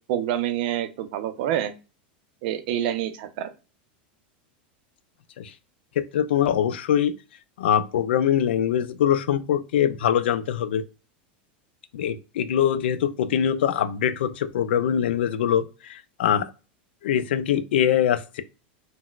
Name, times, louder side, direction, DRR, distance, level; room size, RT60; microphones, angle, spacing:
voice 1, 0.1-1.7 2.4-3.5, right 11 dB, 60° right, 0.4 m, -27 dB
voice 2, 6.0-7.1 7.6-10.8 11.9-16.5 17.0-18.4, left 9 dB, 85° left, 0.3 m, -23 dB
3.9 x 2.1 x 2.3 m
supercardioid pair, 135°, 6 cm